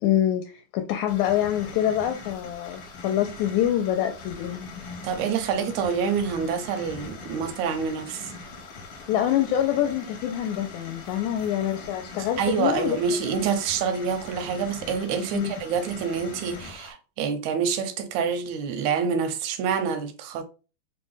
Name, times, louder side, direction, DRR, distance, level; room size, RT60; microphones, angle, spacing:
voice 1, 0.0-4.7 9.1-13.0 15.3-15.5, left 11 dB, 80° left, 1.9 m, -25 dB
sound 1, 1.1-16.9, left 3 dB, 60° left, 1.7 m, -42 dB
voice 2, 5.0-8.3 12.2-20.4, right 6 dB, 80° right, 1.9 m, -27 dB
4.7 x 2.1 x 3.1 m
omnidirectional pair, 3.4 m